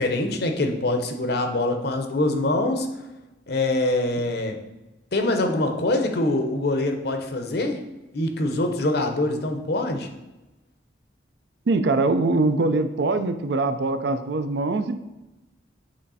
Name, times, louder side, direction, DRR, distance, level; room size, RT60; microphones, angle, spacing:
voice 1, 0.0-2.9 3.5-4.6 5.1-7.8 8.1-10.1, left 2 dB, 60° left, 5 dB, 0.8 m, -24 dB
voice 2, 11.7-15.0, right 3 dB, 65° right, 10 dB, 0.4 m, -22 dB
8.1 x 3.2 x 4.1 m, 1.0 s
head